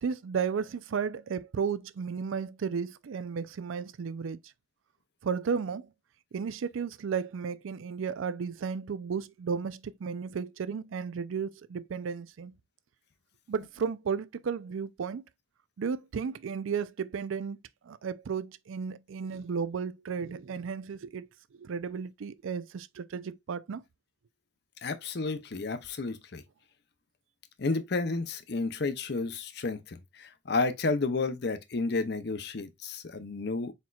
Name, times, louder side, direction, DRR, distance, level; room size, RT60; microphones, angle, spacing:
voice 1, 0.0-4.4 5.2-5.9 6.3-12.5 13.5-15.2 15.8-17.6 17.8-21.3 21.5-23.8, right 6 dB, 85° right, 0.4 m, -34 dB
voice 2, 24.8-26.4 27.6-33.7, left 3 dB, 55° left, 0.6 m, -31 dB
4.4 x 4.2 x 2.3 m
head